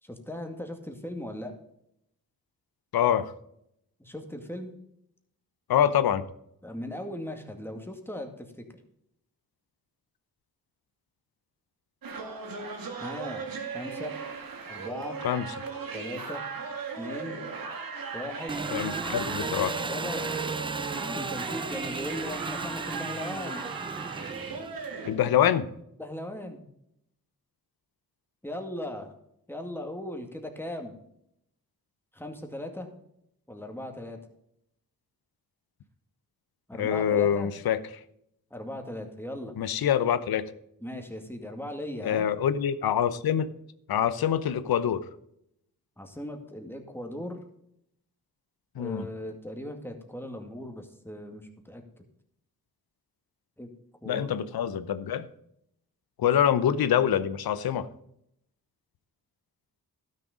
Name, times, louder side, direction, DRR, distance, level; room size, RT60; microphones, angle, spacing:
voice 1, 0.0-1.5 4.0-4.7 6.6-8.6 13.0-13.5 13.7-14.1 14.7-15.2 15.9-16.4 17.0-17.4 18.1-18.6 19.4-20.2 20.9-23.7 26.0-26.7 28.4-29.1 29.5-31.0 32.1-32.9 33.5-34.2 36.7-37.5 38.5-39.5 40.8-42.3 46.0-47.4 48.7-51.8 53.6-53.7 54.0-54.3, left 1 dB, 5° left, 4 dB, 2.1 m, -38 dB
voice 2, 2.9-3.3 5.7-6.2 15.2-15.5 18.7-19.7 25.1-25.7 36.8-37.8 39.6-40.4 42.0-43.5 43.9-45.0 48.7-49.1 54.0-55.2 56.2-57.9, left 9 dB, 80° left, 14 dB, 0.8 m, -25 dB
sound 1, 12.0-25.1, right 4 dB, 70° right, 1.9 m, -37 dB
Engine, 18.5-25.0, right 4 dB, 15° right, 0.3 m, -35 dB
12.0 x 6.7 x 5.0 m, 0.75 s
cardioid pair, 60°, 36 cm